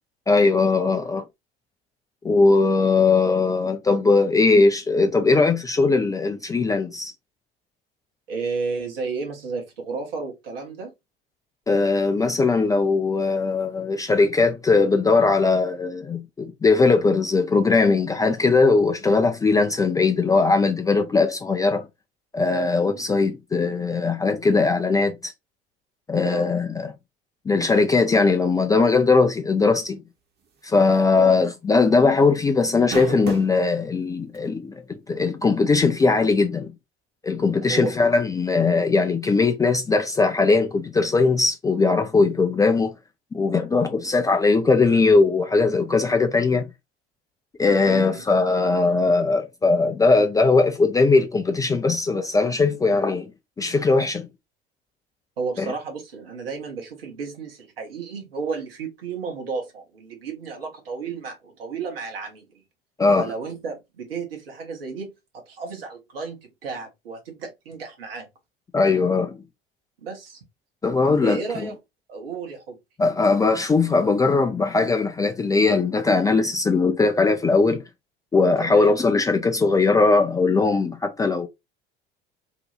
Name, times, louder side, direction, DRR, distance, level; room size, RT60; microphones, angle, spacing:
voice 1, 0.3-1.2 2.2-7.1 11.7-21.9 22.3-25.3 26.1-26.9 27.5-30.0 30.6-36.7 37.2-43.0 43.3-46.7 47.6-53.3 53.6-54.3 55.6-55.7 63.0-63.3 68.7-69.4 70.8-71.7 73.0-77.8 78.3-81.5, left 3 dB, 10° left, 0.3 m, -20 dB
voice 2, 8.3-10.9 22.9-23.1 26.2-26.5 31.2-31.4 37.7-37.9 47.9-48.2 55.4-62.6 63.1-68.3 70.0-70.4 71.2-71.8 72.1-72.8 78.6-78.9, right 4 dB, 75° right, 0.9 m, -32 dB
sound 1, 31.0-31.2 31.5-31.6 32.6-33.6 34.3-34.4 36.0-36.1, right 5 dB, 35° right, 0.9 m, -31 dB
2.7 x 2.2 x 3.0 m
figure-of-eight pair, 60°, 30 cm